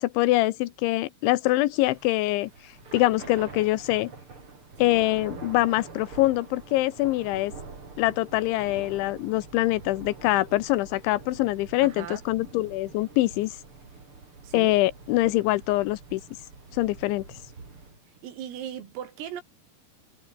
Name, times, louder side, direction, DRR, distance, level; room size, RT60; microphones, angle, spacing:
voice 1, 0.0-2.5 2.9-4.1 4.8-7.5 8.0-13.5 14.5-16.2 16.7-17.3, left 18 dB, 75° left, 2.9 m, -24 dB
Thunder / Rain, 1.7-18.0, right 4 dB, 25° right, 4.6 m, -45 dB
voice 2, 11.8-12.2 14.4-14.8 18.2-19.4, right 10 dB, 80° right, 5.8 m, -38 dB
omnidirectional pair, 6.0 m